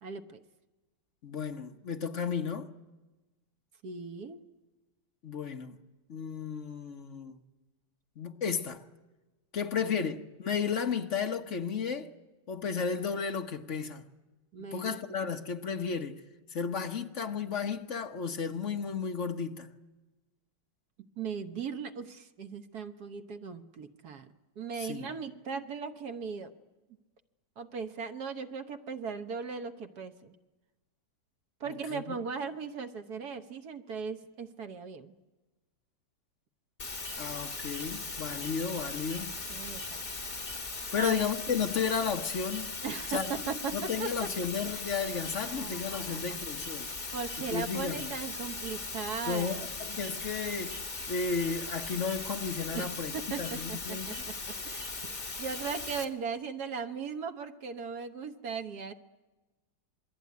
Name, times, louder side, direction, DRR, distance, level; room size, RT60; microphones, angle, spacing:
voice 1, 0.0-0.4 3.8-4.4 9.8-10.0 14.5-15.0 21.2-24.3 24.6-26.5 27.6-30.3 31.6-35.1 39.5-40.0 40.9-41.2 42.8-44.3 44.6-44.8 45.4-46.4 47.1-49.6 52.7-52.9 53.1-54.8 55.4-58.9, right 5 dB, 60° right, 1.6 m, -38 dB
voice 2, 1.2-2.7 5.2-5.8 6.1-7.4 8.2-8.8 9.5-12.1 12.5-14.0 14.7-16.2 16.5-19.7 24.8-25.1 31.9-32.2 37.2-39.3 40.9-42.8 43.1-43.3 43.7-46.9 47.5-48.1 49.3-50.8 51.1-53.1 53.4-54.3, left 6 dB, 45° left, 1.2 m, -33 dB
sound 1, 36.8-56.0, left 3 dB, 30° left, 2.1 m, -39 dB
27.0 x 21.5 x 9.5 m
omnidirectional pair, 1.9 m